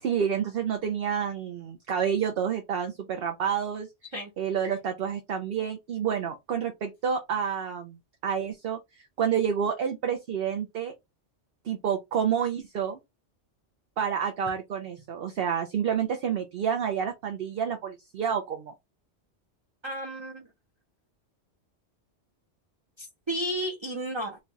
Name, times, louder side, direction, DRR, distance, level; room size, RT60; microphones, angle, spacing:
voice 1, 0.0-3.9 4.4-8.0 8.2-10.9 11.6-13.0 14.0-18.7, right 7 dB, 60° right, 0.8 m, -29 dB
voice 2, 19.8-20.5 23.0-24.4, right 1 dB, 30° right, 0.6 m, -33 dB
3.2 x 2.3 x 3.9 m
omnidirectional pair, 1.2 m